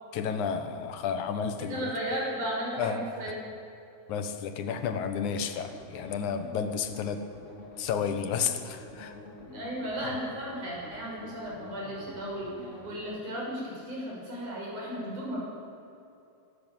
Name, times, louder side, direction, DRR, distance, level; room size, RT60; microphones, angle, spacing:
voice 1, 0.1-1.9 2.8-3.0 4.1-7.2 7.8-9.2, left 7 dB, 80° left, 8 dB, 2.7 m, -31 dB
voice 2, 1.7-3.4 9.4-12.5 12.8-15.4, equal, 90° right, -3 dB, 7.7 m, -35 dB
sound 1, 5.4-13.0, left 1 dB, 25° left, 3.2 m, -47 dB
23.0 x 13.0 x 9.1 m, 2.7 s
omnidirectional pair, 3.4 m